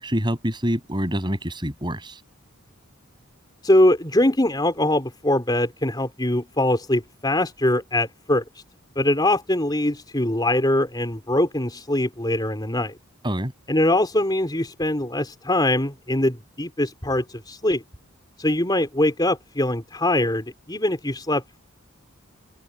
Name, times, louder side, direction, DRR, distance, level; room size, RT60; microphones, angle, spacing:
voice 1, 0.0-2.2 13.2-13.5, equal, 20° right, 6.7 m, -26 dB
voice 2, 3.6-8.6 9.0-13.0 13.7-17.8 18.4-21.6, left 1 dB, 20° left, 4.1 m, -22 dB
open air
head